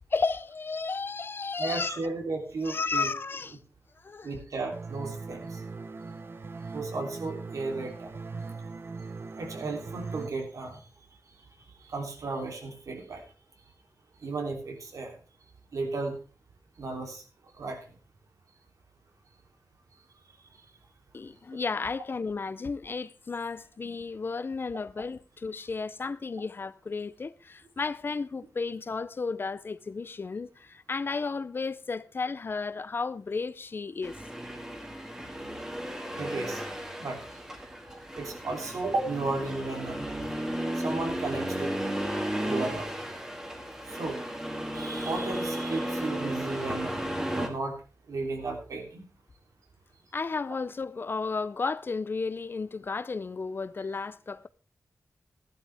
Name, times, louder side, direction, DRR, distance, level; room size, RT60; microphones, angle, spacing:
voice 1, 0.1-2.0 2.6-3.6 4.0-4.3 21.1-34.2 45.7-46.0 50.1-54.5, left 4 dB, 40° left, 0.5 m, -33 dB
voice 2, 1.6-3.1 4.2-5.6 6.7-8.1 9.3-10.8 11.8-13.2 14.2-15.2 15.7-16.2 16.8-17.2 17.6-17.8 36.2-36.6 37.0-37.3 37.9-40.1 40.7-41.8 42.4-42.9 43.9-44.2 44.7-47.0 47.3-47.8 48.1-49.0, right 3 dB, 80° right, 3.2 m, -34 dB
sound 1, 4.7-10.3, right 4 dB, 45° right, 0.9 m, -40 dB
Accelerating revving vroom, 34.0-47.5, equal, 10° right, 1.9 m, -34 dB
14.5 x 11.5 x 3.5 m
wide cardioid pair, 155°, 6 cm